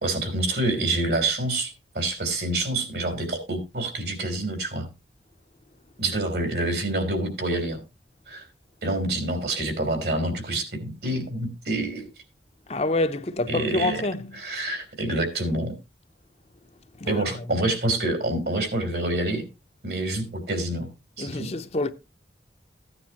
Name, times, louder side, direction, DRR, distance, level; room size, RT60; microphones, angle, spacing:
voice 1, 0.0-4.9 6.0-7.8 8.3-8.5 8.8-12.1 13.5-14.0 14.3-15.7 17.1-19.5 19.8-20.9 21.2-21.5, right 2 dB, 65° right, 3.4 m, -27 dB
voice 2, 12.7-14.3 17.0-17.1 21.2-21.9, left 2 dB, 35° left, 0.7 m, -26 dB
15.5 x 9.6 x 2.9 m
head